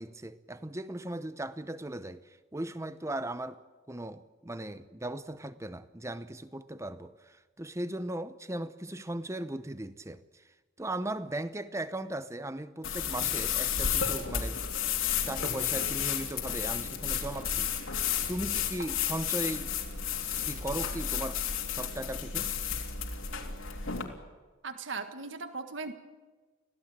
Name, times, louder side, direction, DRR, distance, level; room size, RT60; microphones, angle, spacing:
voice 1, 0.0-3.6 3.9-10.4 10.8-14.9 15.3-17.7 18.0-19.7 20.4-22.5, right 1 dB, 15° right, 0.8 m, -38 dB
sound 1, 12.8-24.0, left 8 dB, 85° left, 3.2 m, -32 dB
voice 2, 24.6-25.9, right 4 dB, 65° right, 1.6 m, -38 dB
25.0 x 16.5 x 9.0 m
head